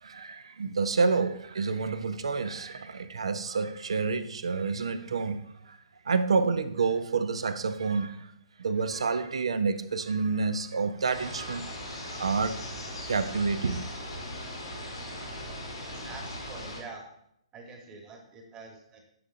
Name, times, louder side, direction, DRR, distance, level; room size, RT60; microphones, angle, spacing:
voice 1, 0.0-5.8 6.0-8.3 8.6-11.7 12.1-12.6 13.1-13.8, right 4 dB, 70° right, 0.5 m, -29 dB
sound 1, 11.1-16.8, left 1 dB, 75° left, 2.0 m, -39 dB
voice 2, 15.9-17.1 17.5-19.0, right 4 dB, 20° right, 1.2 m, -46 dB
10.0 x 3.7 x 2.5 m
figure-of-eight pair, 125°, 3 cm